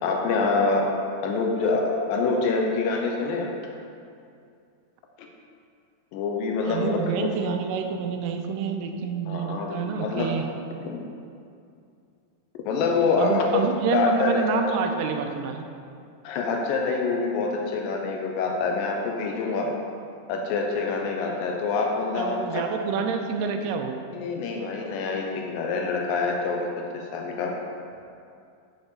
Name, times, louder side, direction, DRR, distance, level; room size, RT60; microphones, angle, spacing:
voice 1, 0.0-0.9 1.2-3.5 5.2-5.3 6.1-7.3 9.3-10.3 10.8-11.0 12.6-13.6 13.9-14.8 16.2-19.7 20.3-22.6 24.1-26.7 26.9-27.5, left 4 dB, 85° left, 1 dB, 2.4 m, -26 dB
voice 2, 6.6-10.5 13.2-15.7 22.1-24.0, right 6 dB, 80° right, 5 dB, 2.0 m, -28 dB
6.7 x 5.3 x 4.7 m, 2.4 s
omnidirectional pair, 4.1 m